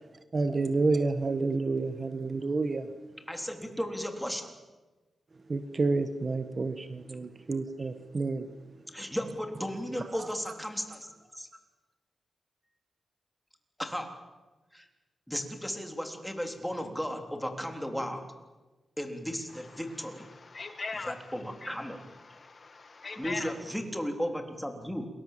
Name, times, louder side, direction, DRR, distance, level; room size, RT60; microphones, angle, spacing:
voice 1, 0.3-2.9 5.5-8.5, right 3 dB, 35° right, 1.3 m, -29 dB
voice 2, 3.3-4.5 7.8-7.9 8.9-11.5 13.8-14.3 14.7-14.9 15.3-18.2 19.0-20.3 21.1-22.0 23.2-25.1, equal, ahead, 3.6 m, -35 dB
voice 3, 20.3-21.3 21.6-21.7 22.2-23.5, left 4 dB, 40° left, 1.7 m, -39 dB
28.5 x 21.5 x 7.5 m
wide cardioid pair, 115°, 0 cm